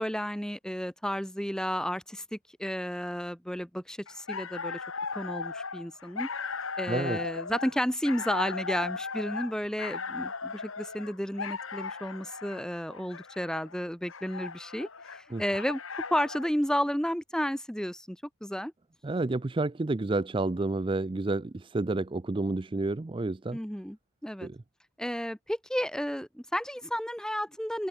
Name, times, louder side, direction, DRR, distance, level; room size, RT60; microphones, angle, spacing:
voice 1, 0.0-4.8 5.1-6.3 6.8-15.8 16.1-18.7 23.5-24.0 24.2-24.5 25.0-27.9, equal, 5° left, 2.5 m, -32 dB
sound 1, 4.1-16.5, left 4 dB, 70° left, 2.0 m, -37 dB
voice 2, 6.9-7.2 15.3-15.4 19.0-23.6 24.4-24.6, right 2 dB, 25° right, 0.4 m, -30 dB
open air
head